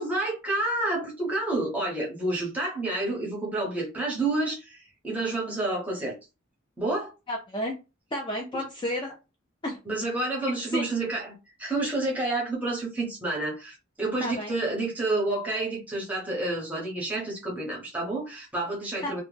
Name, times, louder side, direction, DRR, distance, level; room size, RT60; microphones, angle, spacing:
voice 1, 0.0-6.2 6.8-7.1 8.5-8.6 9.8-19.2, right 2 dB, 5° right, 0.7 m, -29 dB
voice 2, 7.3-7.8 8.1-9.1 9.6-9.8 10.7-10.8 14.2-14.5 19.0-19.2, equal, 25° left, 0.3 m, -31 dB
2.1 x 2.0 x 3.1 m
head